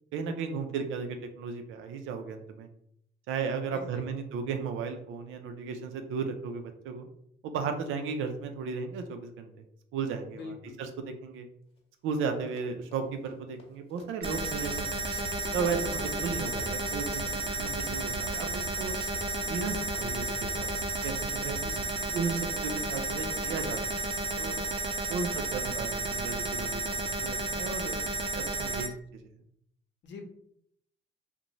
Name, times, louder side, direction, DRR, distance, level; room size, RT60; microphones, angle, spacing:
voice 1, 0.1-2.7 3.3-7.1 7.4-9.5 9.9-11.5 12.0-15.1 15.5-17.2 17.6-18.5 18.8-18.9 19.4-20.3 20.5-20.7 21.0-21.6 22.1-23.8 24.1-24.6 25.1-28.9, right 5 dB, 90° right, 6 dB, 0.4 m, -35 dB
voice 2, 3.7-4.0 10.3-10.8 15.9-16.1 21.6-21.9 30.0-30.2, left 4 dB, 65° left, 3 dB, 0.7 m, -45 dB
Run, 11.8-11.9 12.1-27.0 27.6-27.9 28.2-28.3, left 1 dB, 30° left, 0.8 m, -53 dB
sound 1, 14.2-28.9, right 2 dB, 25° right, 0.4 m, -32 dB
sound 2, 14.2-21.9, right 1 dB, 55° right, 0.7 m, -44 dB
2.6 x 2.1 x 3.0 m, 0.70 s
cardioid pair, 90°, 20 cm